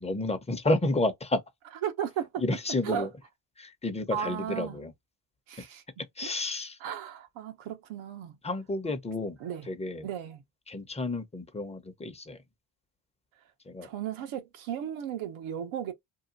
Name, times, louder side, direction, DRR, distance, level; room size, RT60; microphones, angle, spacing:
voice 1, 0.0-1.4 2.4-3.1 3.6-4.9 6.2-6.8 8.4-9.4 9.7-10.1 10.7-12.4 13.7-13.9, left 2 dB, 15° left, 0.8 m, -30 dB
voice 2, 1.8-2.4 2.8-3.1 4.1-4.8 5.5-5.8 6.8-8.4 9.4-9.7 10.0-10.4 13.8-15.9, right 9 dB, 75° right, 1.0 m, -35 dB
2.9 x 2.2 x 2.6 m
supercardioid pair, 60°, 48 cm